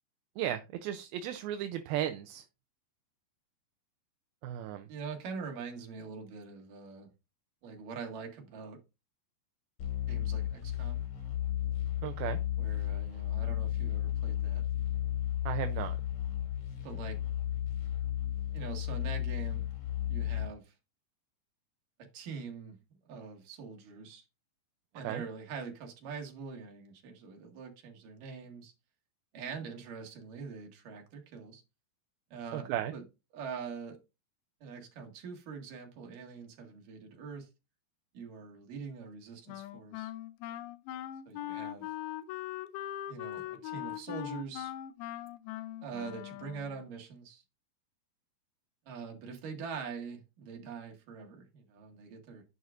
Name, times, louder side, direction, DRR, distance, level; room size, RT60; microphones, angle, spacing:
voice 1, 0.4-2.4 4.4-4.8 12.0-12.4 15.5-16.0 25.0-25.2 32.5-32.9, right 11 dB, 80° right, 2.5 m, -35 dB
voice 2, 4.9-7.1 7.6-8.8 10.1-11.0 12.6-14.6 16.8-17.2 18.5-19.7 20.1-20.8 22.1-22.8 23.1-24.3 24.9-28.7 29.3-31.6 32.3-33.1 33.3-34.0 34.6-37.5 38.1-40.1 41.3-41.9 43.1-44.7 45.8-47.4 48.9-52.4, right 5 dB, 65° right, 3.4 m, -44 dB
sound 1, 9.8-20.5, left 12 dB, 60° left, 4.3 m, -33 dB
Wind instrument woodwind instrument, 39.5-46.9, left 13 dB, 90° left, 2.7 m, -41 dB
11.0 x 8.4 x 2.5 m
omnidirectional pair, 4.3 m